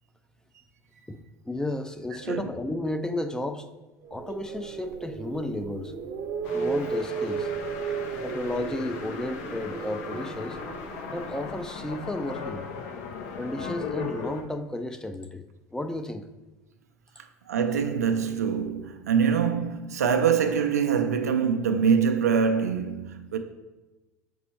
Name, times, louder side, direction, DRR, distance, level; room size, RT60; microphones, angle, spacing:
voice 1, 1.4-3.7 4.1-5.9 6.5-7.5 8.2-10.6 11.1-12.6 13.4-15.4 15.7-16.3, left 1 dB, 10° left, 0.4 m, -33 dB
sound 1, 4.0-12.1, right 5 dB, 55° right, 0.7 m, -35 dB
sound 2, 6.4-14.4, left 5 dB, 70° left, 0.8 m, -37 dB
voice 2, 17.2-23.4, right 6 dB, 85° right, 0.5 m, -24 dB
6.0 x 5.3 x 3.0 m
hypercardioid pair, 75°, 8 cm